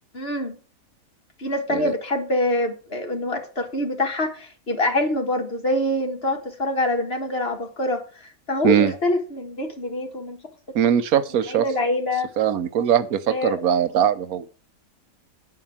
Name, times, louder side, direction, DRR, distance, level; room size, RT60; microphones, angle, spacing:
voice 1, 0.1-0.6 1.4-8.0 8.5-10.4 11.5-12.3 13.3-13.6, left 1 dB, 45° left, 3 dB, 1.8 m, -25 dB
voice 2, 10.7-11.6 12.4-14.5, right 9 dB, 80° right, 12 dB, 1.3 m, -21 dB
9.4 x 4.9 x 7.3 m, 0.39 s
omnidirectional pair, 1.5 m